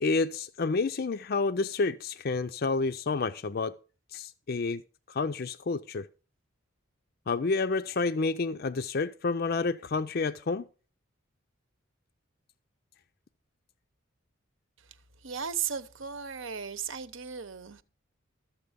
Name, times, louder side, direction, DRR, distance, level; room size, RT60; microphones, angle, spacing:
voice 1, 0.0-3.7 4.1-4.8 5.1-6.1 7.3-10.6, left 4 dB, 45° left, 0.4 m, -29 dB
voice 2, 15.2-17.8, right 7 dB, 65° right, 1.0 m, -36 dB
13.5 x 7.4 x 5.1 m
head